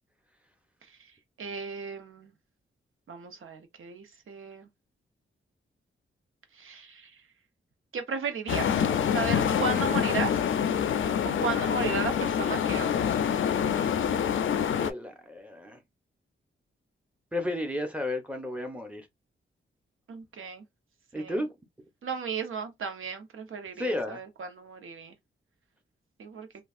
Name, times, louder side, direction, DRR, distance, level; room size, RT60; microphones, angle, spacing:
voice 1, 1.4-2.3 3.1-4.7 6.6-7.1 7.9-8.9 9.1-10.4 11.2-13.0 20.1-20.6 21.1-21.4 22.0-25.2 26.2-26.5, right 5 dB, 75° right, 0.9 m, -35 dB
sound 1, 8.5-14.9, left 8 dB, 70° left, 0.4 m, -26 dB
voice 2, 14.7-15.8 17.3-19.1 21.1-21.5 23.8-24.2, left 1 dB, 5° right, 0.9 m, -33 dB
3.3 x 2.3 x 2.4 m
wide cardioid pair, 105°, 21 cm